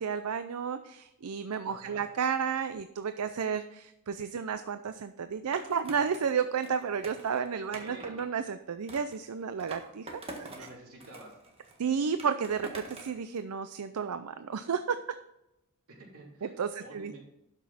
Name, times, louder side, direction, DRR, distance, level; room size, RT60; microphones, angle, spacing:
voice 1, 0.0-10.1 10.4-10.5 11.8-15.0 16.4-17.2, right 6 dB, 90° right, 10 dB, 0.5 m, -32 dB
voice 2, 1.6-2.0 7.7-8.1 10.4-11.3 15.9-17.2, right 2 dB, 70° right, -2 dB, 3.3 m, -50 dB
Skateboard, 5.5-8.3 8.9-10.7 11.0-13.2, right 2 dB, 25° right, 1.5 m, -46 dB
12.0 x 6.1 x 4.2 m, 0.88 s
head